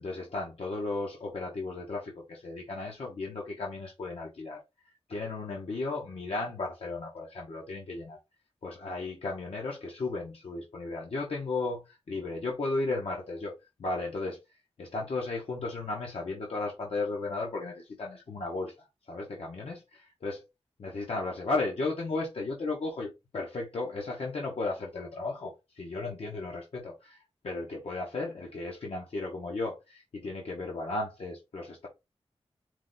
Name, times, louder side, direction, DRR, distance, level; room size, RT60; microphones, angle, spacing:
voice 1, 0.0-4.6 5.1-8.2 8.6-13.5 13.8-14.4 14.8-20.4 20.8-31.9, left 3 dB, 75° left, 1.0 m, -35 dB
4.6 x 2.2 x 3.9 m
wide cardioid pair, 130°, 10 cm